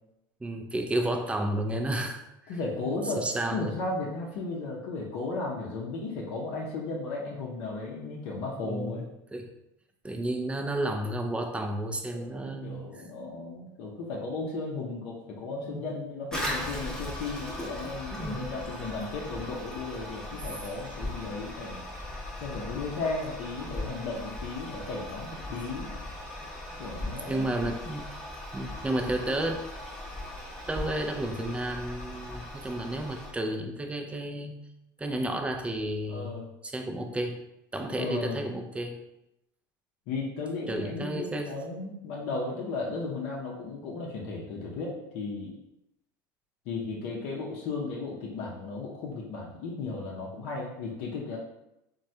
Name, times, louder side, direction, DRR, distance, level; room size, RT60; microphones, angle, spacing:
voice 1, 0.4-2.2 2.9-3.7 8.6-9.0 9.3-9.5 10.0-13.0 15.7-15.9 18.1-18.5 27.3-28.1 28.5-29.6 30.7-34.6 35.0-36.4 36.6-37.4 37.7-39.0 40.7-41.5, right 1 dB, 10° right, 4 dB, 0.4 m, -32 dB
voice 2, 2.5-3.2 3.5-9.0 12.1-21.8 22.3-25.9 26.8-27.7 36.1-36.5 37.9-38.4 40.1-45.6 46.7-51.4, left 3 dB, 60° left, -3 dB, 0.6 m, -35 dB
Toilet flush, 16.3-33.3, left 1 dB, 5° left, 0.7 m, -39 dB
3.0 x 2.2 x 2.7 m, 0.87 s
hypercardioid pair, 90°, 11 cm